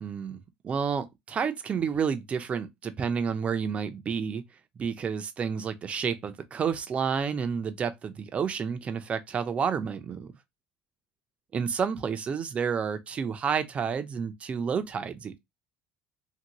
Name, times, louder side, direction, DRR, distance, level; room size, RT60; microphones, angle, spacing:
voice 1, 0.0-4.4 4.8-10.3 11.5-15.4, right 6 dB, 30° right, 0.5 m, -30 dB
2.8 x 2.7 x 2.9 m
cardioid pair, 130°, 4 cm